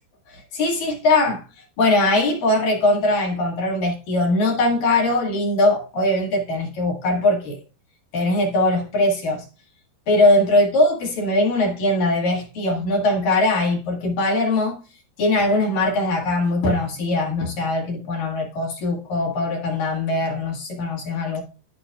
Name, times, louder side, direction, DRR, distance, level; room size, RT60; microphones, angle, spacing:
voice 1, 0.3-1.4 1.8-7.6 8.1-9.4 10.1-14.8 15.2-21.4, left 2 dB, 55° left, 2.9 m, -21 dB
14.0 x 5.4 x 2.3 m
omnidirectional pair, 5.6 m